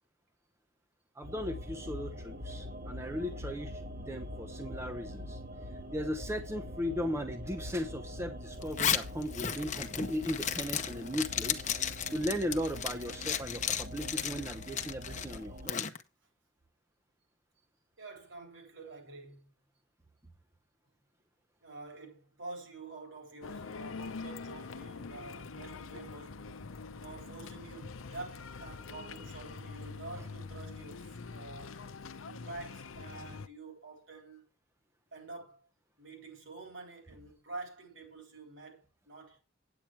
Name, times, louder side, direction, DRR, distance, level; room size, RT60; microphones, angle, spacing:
voice 1, 1.2-5.4 5.7-11.7 12.1-15.9, equal, 15° right, 0.7 m, -37 dB
sound 1, 1.2-15.7, equal, 45° right, 1.7 m, -44 dB
Zipper (clothing), 8.6-16.0, left 9 dB, 35° left, 0.8 m, -34 dB
voice 2, 18.0-19.5 21.6-26.7 27.0-31.9 32.2-34.4 35.1-35.7 36.0-39.4, right 3 dB, 70° right, 3.6 m, -48 dB
sound 2, 23.4-33.5, left 4 dB, 85° left, 0.7 m, -44 dB
8.8 x 8.8 x 4.6 m
head